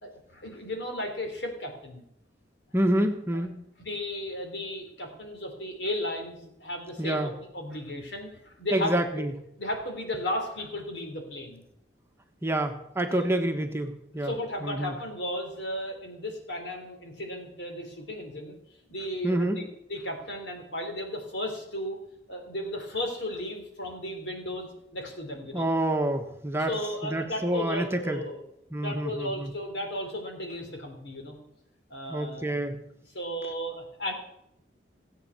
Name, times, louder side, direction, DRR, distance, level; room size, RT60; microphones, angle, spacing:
voice 1, 0.0-2.0 3.8-9.3 9.6-11.6 12.5-12.6 13.2-13.3 14.1-18.6 18.9-22.0 22.3-25.7 26.5-28.4 28.8-31.4 31.9-32.6 33.1-34.1, left 1 dB, 75° left, 3 dB, 3.5 m, -35 dB
voice 2, 2.7-3.6 7.0-7.3 8.7-9.3 12.4-14.3 14.6-14.9 19.2-19.6 25.5-26.7 27.0-28.2 28.7-29.5 32.1-32.8, right 1 dB, 15° right, 5 dB, 1.2 m, -27 dB
17.0 x 8.3 x 6.9 m, 0.76 s
head